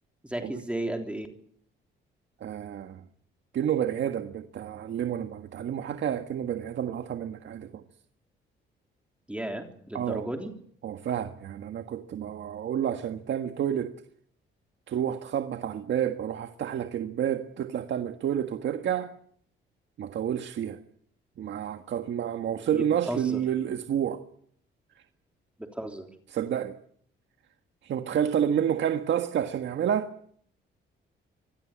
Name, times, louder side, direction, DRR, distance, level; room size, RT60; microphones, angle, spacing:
voice 1, 0.2-1.3 9.3-10.5 22.7-23.4 25.6-26.1, right 1 dB, 5° right, 3.4 m, -34 dB
voice 2, 2.4-3.0 3.5-7.8 9.9-10.3 10.8-13.9 14.9-19.1 20.0-20.8 21.4-24.2 26.3-26.7 27.8-30.1, right 9 dB, 65° right, 1.6 m, -29 dB
26.0 x 18.0 x 8.8 m
cardioid pair, 90°, 20 cm